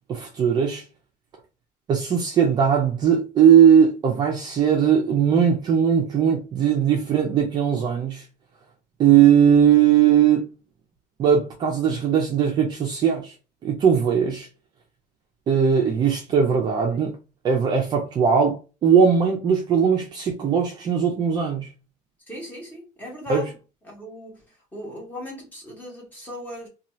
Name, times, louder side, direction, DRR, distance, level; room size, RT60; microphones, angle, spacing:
voice 1, 0.1-0.8 1.9-8.2 9.0-10.4 11.2-13.3 13.6-14.5 15.5-17.1 17.4-21.7 23.3-23.4, right 8 dB, 30° right, 0.5 m, -19 dB
voice 2, 22.3-23.5 23.8-24.4 24.7-26.7, left 1 dB, 10° left, 1.2 m, -38 dB
2.7 x 2.3 x 3.0 m
cardioid pair, 170°, 15 cm